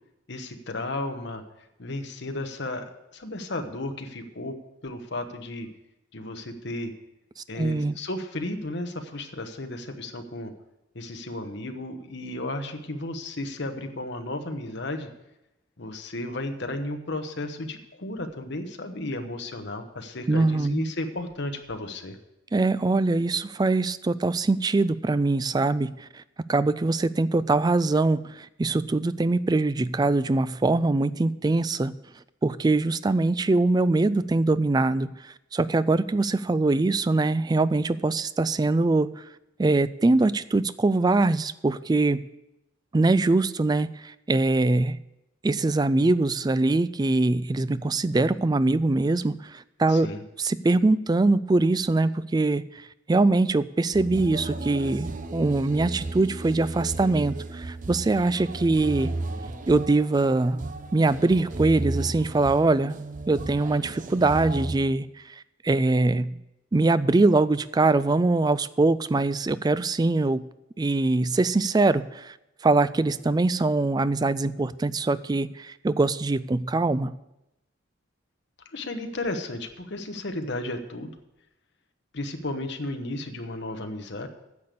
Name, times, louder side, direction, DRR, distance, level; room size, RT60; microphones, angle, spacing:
voice 1, 0.3-1.4 1.8-2.8 3.1-4.5 4.8-5.7 6.1-6.9 7.5-10.5 10.9-15.1 15.8-22.2 49.9-50.2 78.7-81.1 82.1-84.3, left 2 dB, 60° left, 6 dB, 1.1 m, -34 dB
voice 2, 7.6-8.0 20.3-20.8 22.5-26.2 26.5-31.9 32.4-39.2 39.6-42.2 42.9-45.0 45.4-50.1 50.4-59.1 59.7-60.6 60.9-63.0 63.3-66.4 66.7-70.4 70.8-72.4 72.6-77.1, right 2 dB, 20° right, 16 dB, 0.3 m, -23 dB
sound 1, 53.9-64.8, right 2 dB, 40° right, 0.7 m, -34 dB
9.7 x 6.9 x 8.3 m, 0.90 s
head